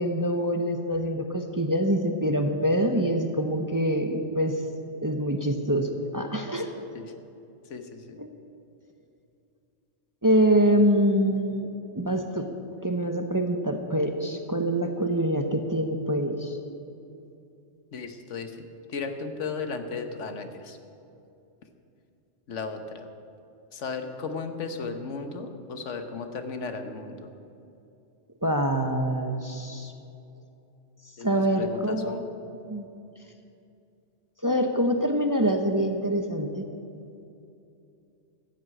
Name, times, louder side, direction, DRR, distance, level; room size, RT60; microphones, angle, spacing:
voice 1, 0.0-4.5 5.0-6.7 8.2-8.3 10.2-11.7 11.9-12.5 12.8-16.6 28.4-29.9 31.2-32.2 32.7-32.9 34.4-36.6, right 1 dB, 20° right, 4 dB, 0.7 m, -25 dB
voice 2, 7.7-8.2 17.9-18.5 18.9-20.8 22.5-23.0 23.7-27.3 31.2-32.2, left 4 dB, 85° left, 7 dB, 1.4 m, -35 dB
14.5 x 7.9 x 8.6 m, 2.7 s
omnidirectional pair, 1.2 m